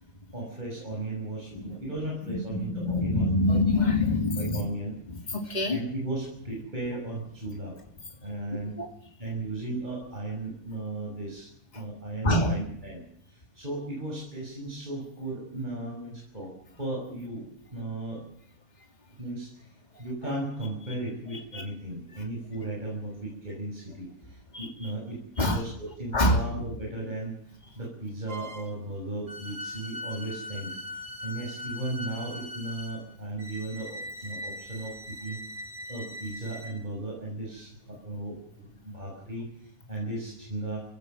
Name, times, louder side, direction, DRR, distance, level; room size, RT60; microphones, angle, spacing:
voice 1, 0.3-3.3 4.0-5.0 5.6-7.8 8.2-8.8 9.2-11.5 11.7-13.0 13.3-16.5 16.8-18.2 19.1-19.7 20.0-27.4 27.8-30.8 31.2-35.4 35.9-40.8, right 2 dB, 30° right, -2 dB, 6.3 m, -36 dB
voice 2, 2.3-4.6 5.3-5.8 8.8-8.9 12.2-12.6 21.5-21.6 24.5-24.7 25.4-25.6 26.1-26.4, left 2 dB, 30° left, 3 dB, 2.8 m, -25 dB
sound 1, 28.3-28.8 29.3-36.8, left 1 dB, 60° right, 2.5 m, -40 dB
29.0 x 16.5 x 7.7 m, 0.70 s
omnidirectional pair, 1.5 m